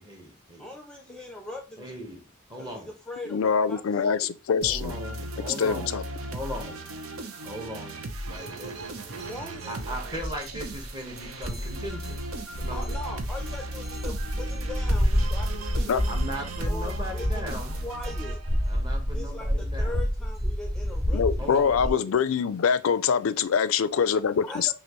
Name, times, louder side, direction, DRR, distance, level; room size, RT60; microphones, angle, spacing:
voice 1, 0.0-0.7 1.8-2.2 2.5-2.9 4.6-5.9 6.3-6.8 7.4-8.0 8.3-8.9 9.7-13.0 16.1-17.8 18.7-20.1 21.4-21.8, equal, 20° right, 1.2 m, -38 dB
voice 2, 0.6-2.1 2.6-4.3 9.1-9.8 12.7-16.0 16.7-18.4 19.1-22.1 24.4-24.7, left 2 dB, 5° left, 0.5 m, -41 dB
voice 3, 3.3-5.0 5.6-6.0 15.9-16.0 21.1-24.7, left 6 dB, 70° left, 0.4 m, -24 dB
sound 1, 4.6-18.9, right 1 dB, 90° right, 0.8 m, -37 dB
sound 2, 9.6-9.7 10.1-21.9, equal, 50° right, 2.5 m, -29 dB
5.9 x 2.5 x 3.0 m
head